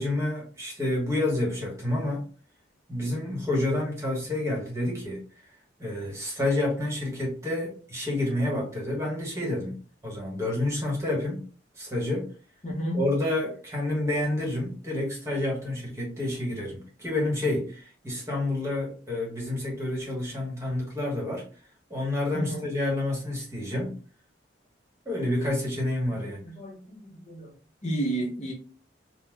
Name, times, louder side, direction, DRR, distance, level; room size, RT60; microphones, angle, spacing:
voice 1, 0.0-2.2 2.9-5.2 5.8-11.5 11.7-12.3 12.9-21.5 21.9-24.0 25.0-26.4, left 1 dB, 15° right, 1.2 m, -29 dB
voice 2, 12.6-13.0 22.3-22.7 26.2-26.8 27.3-27.5 27.8-28.5, right 1 dB, 40° left, 0.7 m, -31 dB
4.0 x 2.1 x 2.3 m
head